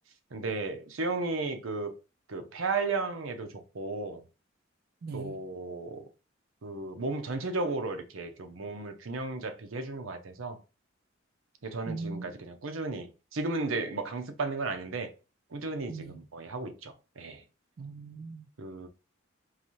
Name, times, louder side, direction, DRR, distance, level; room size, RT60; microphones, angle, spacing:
voice 1, 0.3-1.9 2.3-4.2 5.1-6.1 6.6-10.6 11.6-15.1 15.5-17.4 18.6-18.9, right 3 dB, 90° right, 0.7 m, -34 dB
voice 2, 5.0-5.4 11.9-12.3 15.9-16.2 17.8-18.5, right 4 dB, 50° right, 0.3 m, -39 dB
4.0 x 3.1 x 3.1 m
head